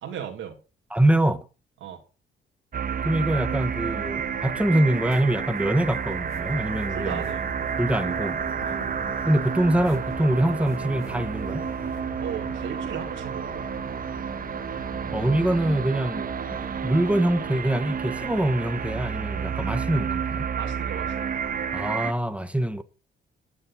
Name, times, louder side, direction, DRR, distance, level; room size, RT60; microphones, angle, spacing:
voice 1, 0.0-0.6 1.8-2.0 6.9-7.5 8.6-8.8 12.2-13.6 20.6-21.4, right 9 dB, 85° right, 2.7 m, -36 dB
voice 2, 0.9-1.4 3.0-7.2 7.8-8.4 9.3-11.6 15.1-16.3 16.8-20.5 21.7-22.8, right 1 dB, 5° right, 1.3 m, -24 dB
sound 1, 2.7-22.1, right 7 dB, 45° right, 1.3 m, -30 dB
sound 2, 3.3-21.7, left 6 dB, 40° left, 1.2 m, -45 dB
sound 3, 4.9-12.0, left 7 dB, 90° left, 2.5 m, -50 dB
13.0 x 6.5 x 6.1 m
cardioid pair, 90°, 20 cm